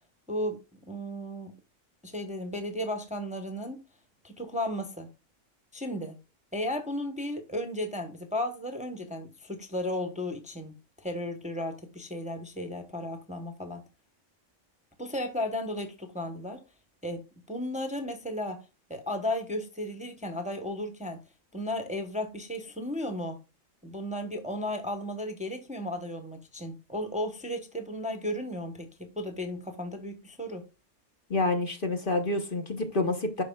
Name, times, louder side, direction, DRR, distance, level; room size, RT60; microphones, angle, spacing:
voice 1, 0.3-0.6 0.9-1.5 2.0-3.8 4.2-5.1 5.7-6.2 6.5-13.8 15.0-16.6 17.0-18.6 18.9-21.2 21.5-23.4 23.8-30.6, left 1 dB, 5° right, 0.9 m, -34 dB
voice 2, 31.3-33.4, left 2 dB, 45° left, 1.1 m, -28 dB
11.5 x 4.5 x 2.2 m
omnidirectional pair, 1.3 m